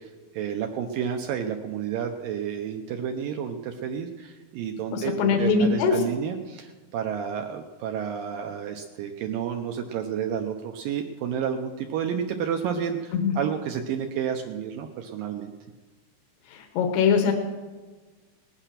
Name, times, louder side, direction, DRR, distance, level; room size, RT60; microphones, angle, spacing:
voice 1, 0.0-15.5, right 8 dB, 75° right, 4 dB, 2.2 m, -30 dB
voice 2, 4.9-6.0 13.1-13.3 16.5-17.3, left 5 dB, 90° left, 4 dB, 3.2 m, -22 dB
19.5 x 9.0 x 5.8 m, 1.3 s
omnidirectional pair, 4.6 m